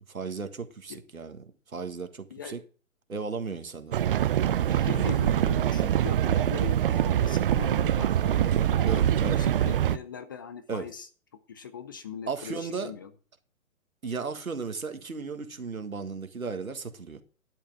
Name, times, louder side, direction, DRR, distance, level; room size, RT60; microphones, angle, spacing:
voice 1, 0.1-2.6 3.1-4.0 8.8-9.4 10.7-10.9 12.3-12.9 14.0-17.2, right 5 dB, 85° right, 1.8 m, -35 dB
sound 1, 3.9-10.0, right 10 dB, 40° right, 0.6 m, -24 dB
voice 2, 4.7-11.1 11.5-13.1, left 7 dB, 15° left, 0.4 m, -40 dB
12.5 x 10.5 x 3.5 m
figure-of-eight pair, 130°, 41 cm